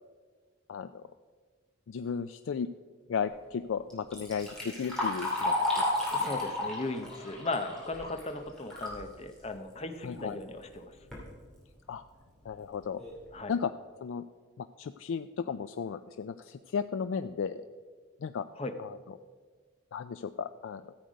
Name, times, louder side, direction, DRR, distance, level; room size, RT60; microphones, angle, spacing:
voice 1, 1.9-2.7 3.1-5.8 10.0-10.4 11.9-12.0 12.5-13.0 13.5-13.7 14.0-14.2 14.6-17.6 18.2-18.4 18.8-19.0 19.9-20.9, left 6 dB, 80° left, 10 dB, 0.4 m, -34 dB
Liquid, 3.9-9.0 9.4-9.5 10.4-10.5 10.9-11.3 11.9-12.0 12.5-12.6 13.0-13.2, left 2 dB, 5° left, 2.8 m, -33 dB
voice 2, 6.1-10.9 13.3-13.6 18.5-18.7, left 2 dB, 30° left, 7 dB, 0.8 m, -37 dB
14.0 x 8.0 x 5.1 m, 1.5 s
head